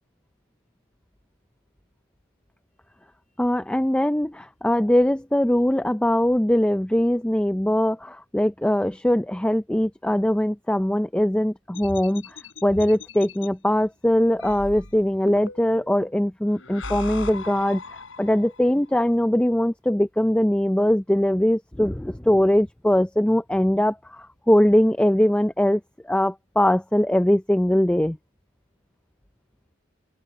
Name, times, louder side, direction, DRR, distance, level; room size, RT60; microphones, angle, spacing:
voice 1, 3.4-12.4 12.6-28.2, left 1 dB, 5° left, 0.5 m, -21 dB
sound 1, 11.7-13.5 14.4-15.9 16.5-18.7, left 2 dB, 70° left, 7.6 m, -38 dB
open air
head